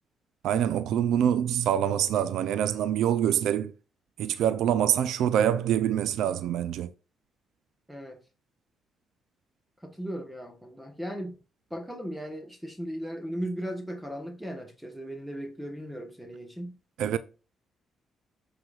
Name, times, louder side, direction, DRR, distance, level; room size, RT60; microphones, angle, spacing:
voice 1, 0.4-3.7 4.2-6.9 17.0-17.2, right 10 dB, 85° right, 0.4 m, -25 dB
voice 2, 7.9-8.2 9.8-11.4 11.7-16.8, equal, 5° right, 1.1 m, -37 dB
14.0 x 5.0 x 2.4 m
cardioid pair, 90°, 0 cm